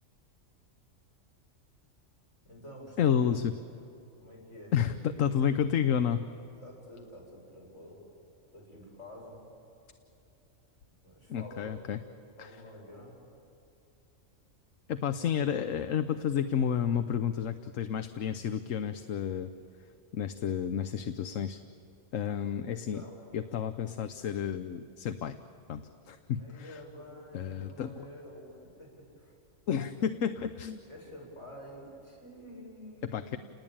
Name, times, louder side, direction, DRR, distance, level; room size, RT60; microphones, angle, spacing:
voice 1, 2.4-3.3 4.2-5.3 6.6-8.0 8.5-9.4 11.0-11.8 12.4-13.3 22.4-23.2 26.4-29.3 29.7-30.0 30.9-33.4, equal, 65° left, -3 dB, 8.1 m, -49 dB
voice 2, 3.0-3.5 4.7-6.2 11.3-12.0 12.4-12.5 14.9-19.5 20.1-21.6 22.1-23.0 23.3-25.4 25.7-26.8 27.3-27.9 29.7-30.8 33.1-33.4, left 8 dB, 80° left, 10 dB, 1.2 m, -30 dB
30.0 x 20.0 x 8.9 m, 2.8 s
omnidirectional pair, 1.3 m